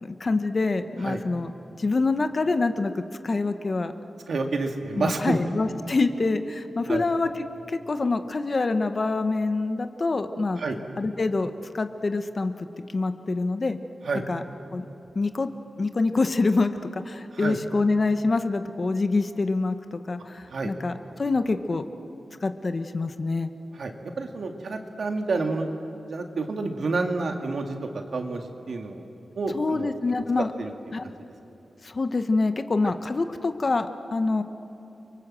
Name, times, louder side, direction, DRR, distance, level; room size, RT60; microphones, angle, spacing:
voice 1, 0.0-1.5 1.8-3.9 5.0-7.3 7.7-10.6 11.0-12.7 12.9-13.8 14.3-14.4 14.7-14.8 15.1-15.5 15.8-20.9 21.2-21.9 22.4-23.5 29.5-30.5 30.9-31.1 31.8-34.4, left 3 dB, 35° left, 9 dB, 1.1 m, -26 dB
voice 2, 4.3-5.4 6.9-7.1 10.6-10.8 14.0-14.2 17.3-17.6 20.5-20.7 23.8-25.7 26.1-27.8 28.1-29.0 29.4-30.0 30.6-30.7, right 3 dB, 65° right, 4 dB, 2.3 m, -29 dB
30.0 x 24.5 x 7.7 m, 2.9 s
wide cardioid pair, 130°, 0 cm